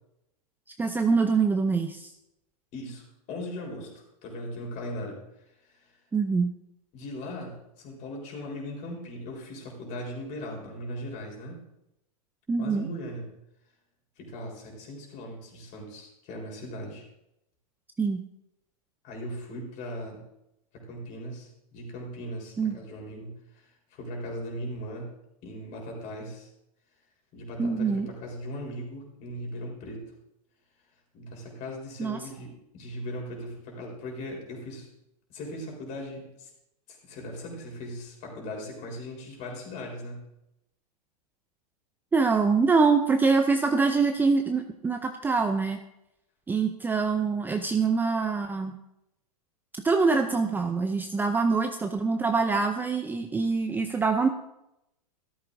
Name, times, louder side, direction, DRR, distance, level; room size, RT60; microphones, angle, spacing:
voice 1, 0.8-2.1 6.1-6.5 12.5-12.9 18.0-18.2 22.6-22.8 27.6-28.1 32.0-32.2 42.1-45.8 46.5-48.7 49.8-54.3, right 4 dB, 10° right, 6 dB, 0.5 m, -24 dB
voice 2, 2.7-6.0 6.9-11.6 12.6-13.3 14.2-17.0 19.0-20.2 20.7-25.1 25.4-26.5 27.3-30.0 31.1-34.9 35.3-36.5 36.9-40.2, equal, 40° left, 0 dB, 4.1 m, -39 dB
13.5 x 13.0 x 2.6 m, 0.86 s
hypercardioid pair, 115°, 20 cm